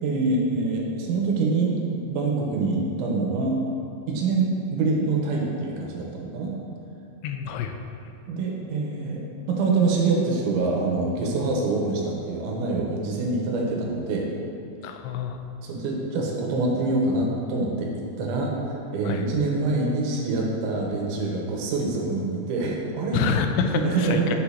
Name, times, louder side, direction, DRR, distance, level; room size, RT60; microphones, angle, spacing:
voice 1, 0.0-3.6 4.1-6.5 8.3-9.2 9.5-14.3 15.6-23.3 23.7-24.4, right 3 dB, 90° right, -2 dB, 3.3 m, -25 dB
voice 2, 7.2-7.8 14.8-15.4 19.0-19.3 23.1-24.3, left 6 dB, 85° left, 5 dB, 2.8 m, -27 dB
8.3 x 7.5 x 2.8 m, 2.7 s
omnidirectional pair, 5.3 m